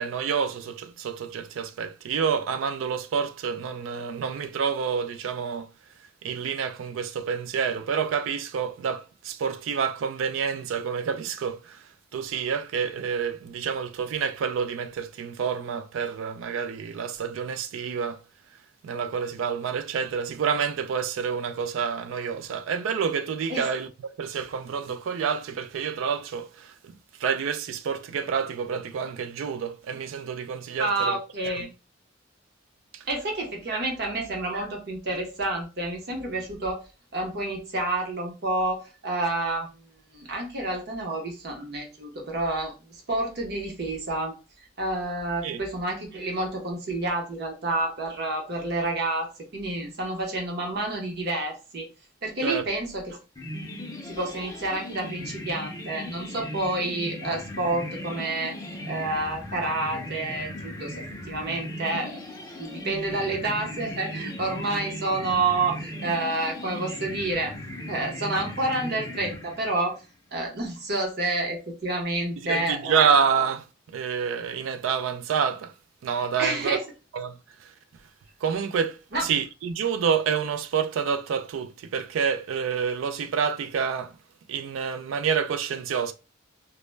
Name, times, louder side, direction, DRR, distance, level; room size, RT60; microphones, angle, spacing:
voice 1, 0.0-5.7 6.2-18.2 18.8-23.9 24.2-31.2 31.6-31.7 32.9-33.1 33.7-33.9 45.4-45.6 52.4-52.6 72.4-75.7 76.0-76.8 77.1-77.7 78.4-84.2 84.5-86.1, right 6 dB, 85° right, 0.3 m, -28 dB
voice 2, 30.8-31.7 33.1-36.8 37.1-39.7 40.1-44.4 44.8-51.9 52.2-53.2 54.0-58.5 58.9-61.0 61.3-62.2 62.6-67.5 67.9-70.0 70.3-73.1 76.4-76.8 79.1-79.2, right 2 dB, 55° right, 0.8 m, -29 dB
sound 1, 53.4-69.9, left 1 dB, 20° left, 0.5 m, -38 dB
2.1 x 2.1 x 3.2 m
head